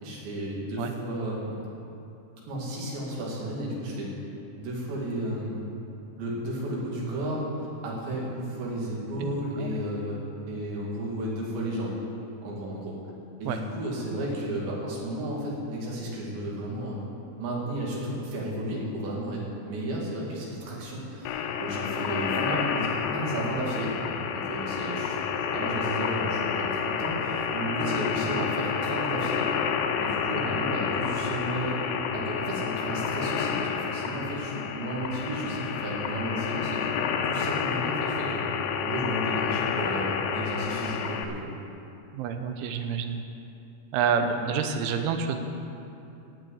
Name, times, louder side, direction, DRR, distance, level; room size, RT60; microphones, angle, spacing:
voice 1, 0.0-1.7 2.5-4.1 4.6-5.6 6.2-7.4 7.8-10.2 10.5-12.0 12.4-13.0 13.4-17.0 17.4-23.9 24.3-25.2 25.5-29.5 30.0-31.8 32.1-38.4 38.8-41.5, right 1 dB, 70° right, -4 dB, 4.8 m, -33 dB
sound 1, 21.3-41.3, left 6 dB, 85° left, 3.0 m, -29 dB
voice 2, 42.1-43.2 43.9-45.4, right 6 dB, 85° right, 6 dB, 3.4 m, -28 dB
17.5 x 6.4 x 8.4 m, 2.7 s
omnidirectional pair, 5.3 m